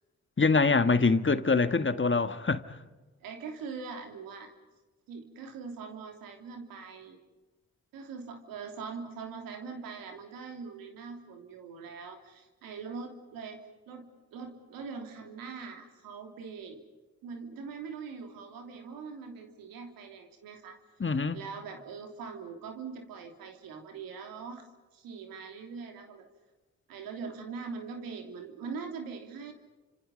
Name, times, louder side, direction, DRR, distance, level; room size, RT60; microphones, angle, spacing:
voice 1, 0.4-2.8 21.0-21.4, left 4 dB, 35° left, 1.8 m, -24 dB
voice 2, 3.2-4.5 5.1-7.2 7.9-13.6 13.9-16.8 17.2-20.8 21.3-24.7 24.9-26.3 26.9-29.5, right 5 dB, 90° right, 3.0 m, -42 dB
29.5 x 26.5 x 5.3 m
supercardioid pair, 40°, 34 cm